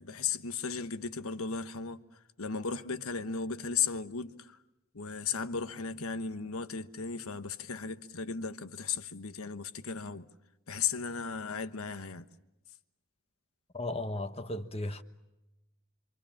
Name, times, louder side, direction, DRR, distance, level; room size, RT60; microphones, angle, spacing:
voice 1, 0.0-2.0 2.4-4.6 4.9-10.3 10.7-12.2, left 6 dB, 80° left, 1.2 m, -35 dB
voice 2, 13.7-15.0, left 1 dB, 25° left, 1.2 m, -35 dB
27.0 x 27.0 x 7.2 m
head